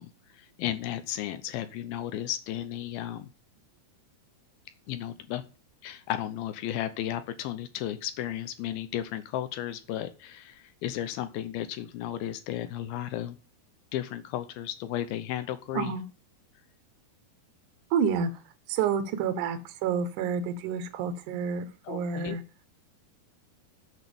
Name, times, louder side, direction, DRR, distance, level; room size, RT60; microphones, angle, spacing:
voice 1, 0.0-3.3 4.9-5.5 5.8-13.4 13.9-15.9 21.9-22.4, left 12 dB, 75° left, 12 dB, 2.5 m, -34 dB
voice 2, 17.9-18.4 18.7-22.4, right 6 dB, 65° right, 8 dB, 2.1 m, -29 dB
8.2 x 6.3 x 7.0 m, 0.34 s
omnidirectional pair, 4.7 m